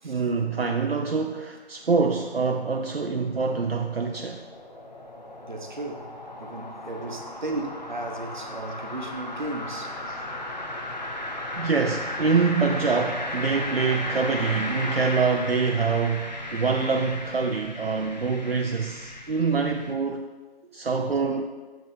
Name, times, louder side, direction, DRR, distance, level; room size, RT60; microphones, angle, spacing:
voice 1, 0.0-4.4 10.1-10.2 11.6-20.3 20.7-21.4, right 4 dB, 70° right, 3 dB, 0.6 m, -25 dB
sound 1, 2.8-19.9, left 1 dB, 40° left, 0.8 m, -35 dB
voice 2, 5.4-6.1 6.4-10.0 18.2-18.6 20.6-20.7 21.2-21.4, right 2 dB, 45° right, 3 dB, 0.9 m, -35 dB
6.9 x 6.4 x 4.2 m, 1.3 s
figure-of-eight pair, 160°, 32 cm